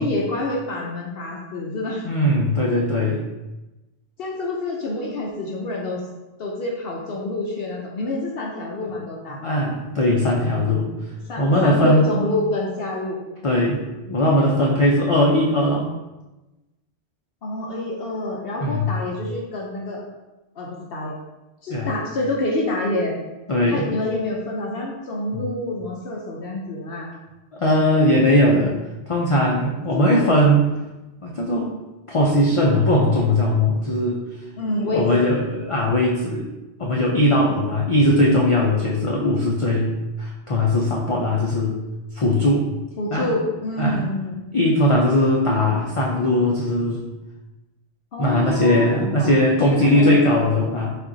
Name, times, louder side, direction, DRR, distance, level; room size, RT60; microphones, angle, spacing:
voice 1, 0.0-2.0 4.2-6.0 6.4-9.4 11.1-13.2 17.4-20.0 20.5-21.2 21.6-23.2 23.7-27.1 29.8-30.4 34.6-35.2 43.0-44.4 45.3-45.6 48.1-50.2 50.4-50.6, left 2 dB, 65° left, -2 dB, 0.8 m, -27 dB
voice 2, 2.0-3.2 9.4-10.9 11.4-12.1 13.4-15.9 18.6-18.9 21.7-21.9 23.5-23.9 25.3-25.4 27.5-28.8 29.1-30.6 31.2-31.7 32.1-34.3 34.9-36.5 36.8-39.9 40.2-41.8 42.1-42.7 43.1-43.3 43.8-44.0 44.5-47.1 48.2-51.0, left 1 dB, 50° left, -2 dB, 0.4 m, -19 dB
4.3 x 2.4 x 3.8 m, 1.1 s
omnidirectional pair, 1.1 m